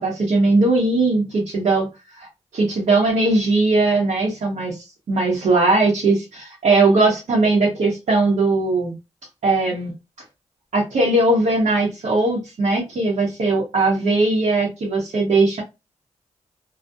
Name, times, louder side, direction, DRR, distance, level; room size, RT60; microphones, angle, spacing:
voice 1, 0.0-1.9 2.2-2.3 2.5-8.9 9.4-9.9 10.7-15.6, right 2 dB, 80° right, -4 dB, 0.8 m, -19 dB
2.4 x 2.0 x 2.5 m, 0.25 s
cardioid pair, 50°, 12 cm